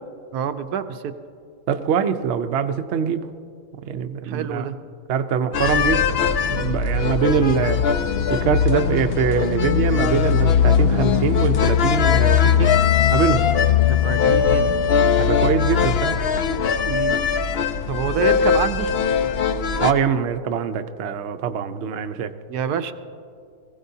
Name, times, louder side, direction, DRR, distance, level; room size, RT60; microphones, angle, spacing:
voice 1, 0.3-1.1 4.2-4.7 13.9-14.7 16.8-17.2 17.9-18.9 22.5-22.9, right 8 dB, 85° right, 9 dB, 1.2 m, -26 dB
voice 2, 1.7-3.2 3.7-4.7 5.1-6.1 6.4-7.8 8.3-12.7 13.1-13.5 15.2-16.2 19.8-22.3, right 7 dB, 60° right, 7 dB, 0.8 m, -23 dB
sound 1, 5.5-19.9, left 7 dB, 70° left, 0.6 m, -20 dB
21.5 x 15.5 x 2.7 m, 2.3 s
omnidirectional pair, 1.6 m